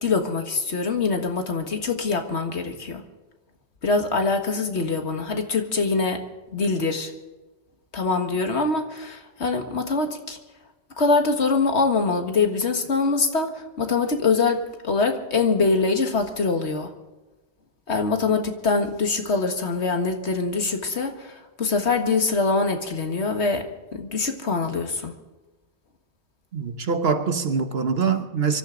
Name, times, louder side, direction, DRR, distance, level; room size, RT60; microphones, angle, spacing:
voice 1, 0.0-3.0 3.8-6.2 6.5-7.1 7.9-10.4 11.0-14.6 14.8-16.9 17.9-23.6 23.9-25.1, left 4 dB, 75° left, 1.9 m, -24 dB
voice 2, 26.5-28.6, right 5 dB, 60° right, 1.4 m, -24 dB
24.5 x 13.5 x 3.9 m
omnidirectional pair, 1.2 m